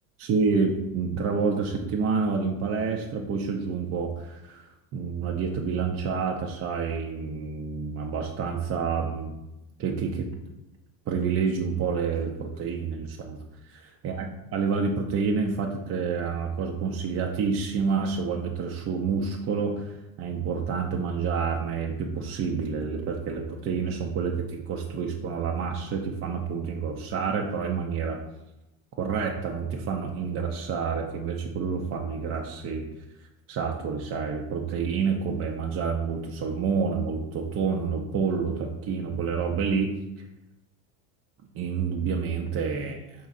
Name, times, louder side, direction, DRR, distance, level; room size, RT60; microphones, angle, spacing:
voice 1, 0.2-4.6 4.9-9.3 9.8-10.3 11.1-13.4 14.0-14.3 14.5-19.9 20.2-28.2 29.0-32.9 33.5-39.9 41.6-43.0, right 5 dB, 35° right, 1 dB, 0.4 m, -28 dB
4.6 x 4.1 x 2.4 m, 0.94 s
supercardioid pair, 110°, 42 cm